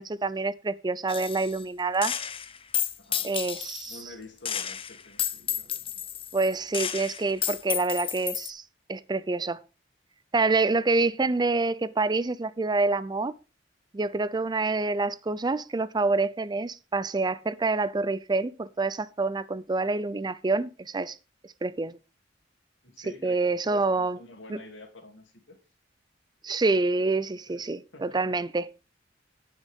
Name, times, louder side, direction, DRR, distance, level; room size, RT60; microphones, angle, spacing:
voice 1, 0.0-2.2 3.2-4.0 6.3-8.6 8.9-9.6 10.3-13.3 13.9-21.2 21.6-22.0 23.2-24.2 24.5-24.6 26.4-28.7, right 3 dB, 25° right, 0.5 m, -27 dB
Gunshot gunfire, 1.1-1.6 2.0-4.0 4.5-8.5, left 9 dB, 30° left, 0.7 m, -32 dB
voice 2, 3.0-3.3 3.9-6.1 22.8-25.6 27.5-27.6 27.9-28.4, left 2 dB, 75° left, 2.9 m, -48 dB
17.5 x 6.3 x 3.6 m
head